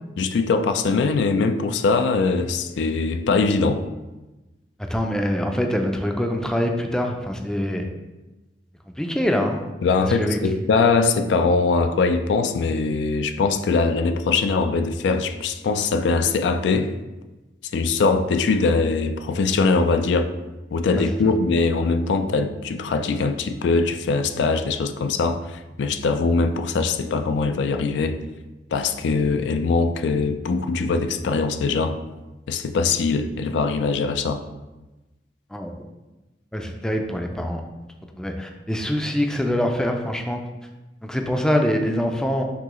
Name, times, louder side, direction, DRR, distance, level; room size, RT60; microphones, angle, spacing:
voice 1, 0.2-3.8 9.8-16.9 17.7-20.3 20.7-28.2 28.7-32.0 32.5-34.4, left 4 dB, 90° left, 8 dB, 0.3 m, -22 dB
voice 2, 4.9-7.9 9.0-9.6 10.2-10.4 20.9-21.3 35.5-35.7 36.5-37.6 38.2-40.4 41.0-42.4, equal, 5° left, 3 dB, 0.3 m, -24 dB
5.9 x 2.8 x 3.0 m, 1.1 s
head